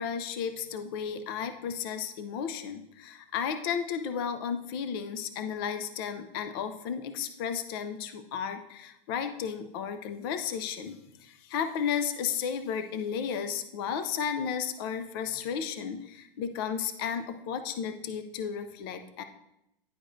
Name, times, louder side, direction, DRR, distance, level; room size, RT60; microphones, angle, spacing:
voice 1, 0.0-19.2, left 7 dB, 25° left, 9 dB, 0.4 m, -33 dB
10.0 x 4.7 x 2.6 m, 0.83 s
hypercardioid pair, 145°, 29 cm